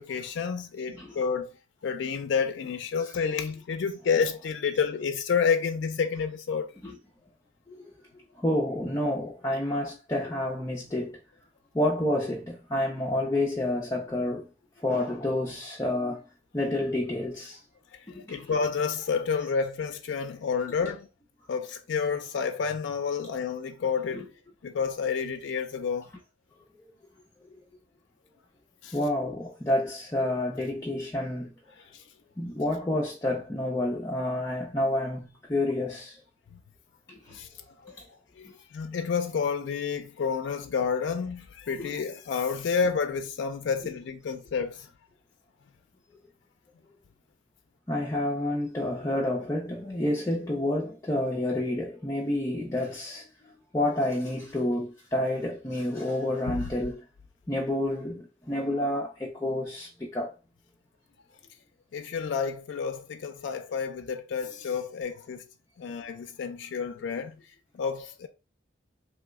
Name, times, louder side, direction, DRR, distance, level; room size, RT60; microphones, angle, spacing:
voice 1, 0.0-1.5 1.8-6.7 18.3-21.1 21.5-24.2 24.6-26.1 28.8-29.0 37.3-37.5 37.8-38.0 38.4-44.9 56.5-56.6 61.9-65.4 65.8-67.3 67.7-68.3, left 6 dB, 80° left, 0.3 m, -29 dB
voice 2, 0.9-1.2 3.0-3.1 6.8-7.0 7.7-7.9 8.4-11.2 11.7-14.5 14.8-16.2 16.5-17.6 18.1-18.5 24.1-24.3 28.9-31.5 32.4-36.2 37.1-37.4 38.4-38.5 41.8-41.9 43.8-43.9 47.9-57.0 57.5-60.3, left 1 dB, 15° left, 0.4 m, -29 dB
3.1 x 2.0 x 3.3 m
head